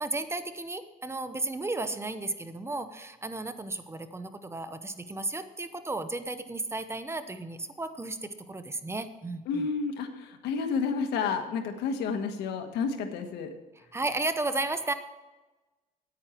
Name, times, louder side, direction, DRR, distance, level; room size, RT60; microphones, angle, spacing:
voice 1, 0.0-9.7 13.9-14.9, right 2 dB, 15° right, 10 dB, 0.8 m, -34 dB
voice 2, 9.5-13.5, left 5 dB, 85° left, 6 dB, 1.4 m, -30 dB
9.5 x 9.1 x 4.5 m, 1.1 s
cardioid pair, 110°, 17 cm